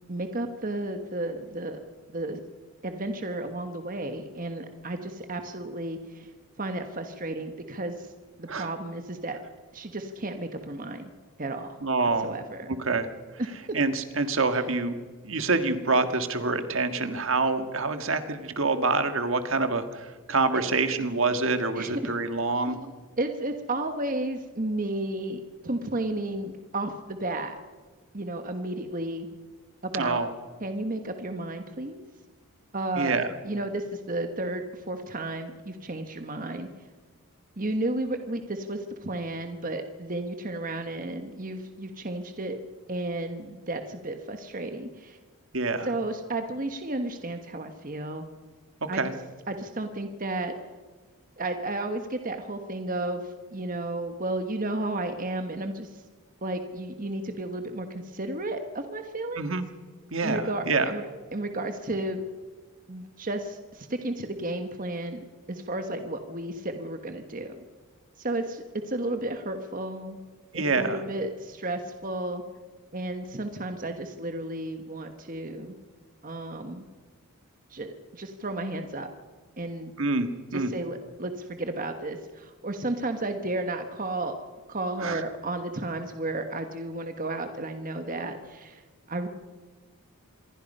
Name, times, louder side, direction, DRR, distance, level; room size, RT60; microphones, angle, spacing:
voice 1, 0.1-1.8 2.1-2.4 2.8-6.3 6.6-8.1 8.4-9.4 9.7-11.1 11.4-11.8 12.2-12.7 13.4-13.5 14.6-14.7 20.5-20.6 21.7-22.1 22.6-22.9 23.2-27.6 28.1-29.3 29.8-30.3 30.6-32.0 32.7-36.7 37.6-42.6 42.9-45.2 45.8-48.3 48.9-49.0 49.5-50.5 51.4-56.0 56.4-59.4 60.2-61.1 61.3-62.2 62.9-65.2 65.5-67.6 68.2-70.2 70.5-72.4 72.9-75.7 76.2-76.8 77.7-77.9 78.1-79.1 79.6-79.9 80.5-84.3 84.7-88.8 89.1-89.3, right 2 dB, 40° right, 6 dB, 1.3 m, -33 dB
voice 2, 11.8-12.4 12.7-13.1 13.7-15.0 15.2-22.8 29.9-30.3 33.0-33.3 45.5-45.9 48.9-49.1 59.4-59.6 60.1-60.9 70.5-71.0 80.0-80.7 85.0-85.2, right 3 dB, 60° right, 8 dB, 1.7 m, -26 dB
26.5 x 22.5 x 5.5 m, 1.4 s
head